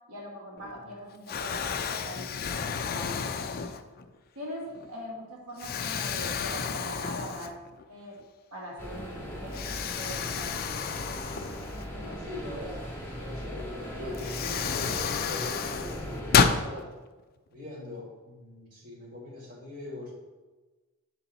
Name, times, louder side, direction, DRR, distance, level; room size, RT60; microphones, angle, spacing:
voice 1, 0.1-3.7 4.4-7.6 7.9-8.2 8.5-10.7, equal, 85° right, -3 dB, 1.6 m, -42 dB
Explosion, 0.6-0.9 1.3-4.1 4.7-4.9 5.6-7.8 8.2-8.3 9.5-12.2 13.6-13.7 14.1-16.6, left 6 dB, 45° left, 0.4 m, -30 dB
sound 1, 8.8-16.6, equal, 10° left, 1.4 m, -38 dB
voice 2, 11.9-16.9 17.5-20.1, left 2 dB, 40° right, -4 dB, 1.7 m, -42 dB
7.6 x 4.3 x 4.0 m, 1.2 s
head